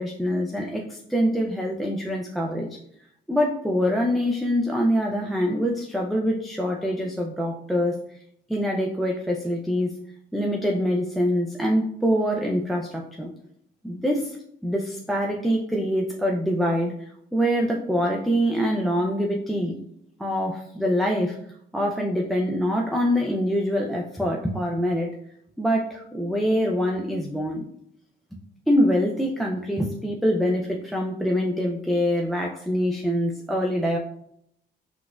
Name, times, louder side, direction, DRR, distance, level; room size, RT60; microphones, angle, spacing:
voice 1, 0.0-2.7 3.3-7.9 8.5-9.9 10.3-13.3 13.8-14.4 14.6-16.9 17.3-19.7 20.2-21.4 21.7-25.1 25.6-27.7 28.7-34.0, equal, ahead, -1 dB, 0.4 m, -24 dB
4.1 x 2.3 x 2.2 m, 0.70 s
cardioid pair, 90°, 20 cm